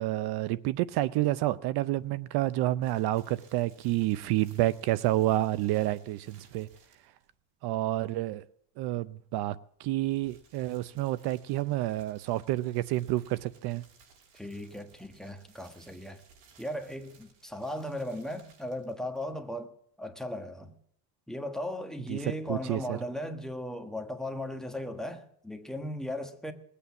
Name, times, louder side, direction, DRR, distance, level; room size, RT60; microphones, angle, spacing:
voice 1, 0.0-6.7 7.6-8.4 8.8-13.8 22.1-22.2 22.5-23.0, right 16 dB, 60° right, 0.7 m, -29 dB
sound 1, 2.8-7.3 9.8-19.3, right 5 dB, 85° right, 5.9 m, -61 dB
voice 2, 14.3-16.2 16.6-19.7 20.0-20.7 21.3-26.5, left 1 dB, ahead, 1.3 m, -37 dB
20.5 x 8.5 x 7.1 m
cardioid pair, 150°, 44 cm